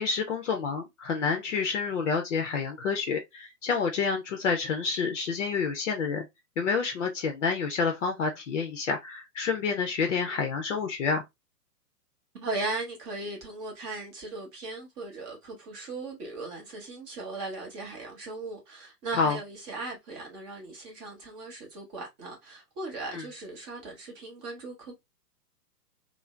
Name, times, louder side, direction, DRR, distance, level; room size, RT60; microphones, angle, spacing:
voice 1, 0.0-6.2 6.6-11.2 19.1-19.4 23.1-23.2, left 5 dB, 50° left, 0.6 m, -28 dB
voice 2, 12.3-25.0, right 2 dB, 20° right, 0.6 m, -38 dB
2.5 x 2.0 x 3.0 m
figure-of-eight pair, 120°, 48 cm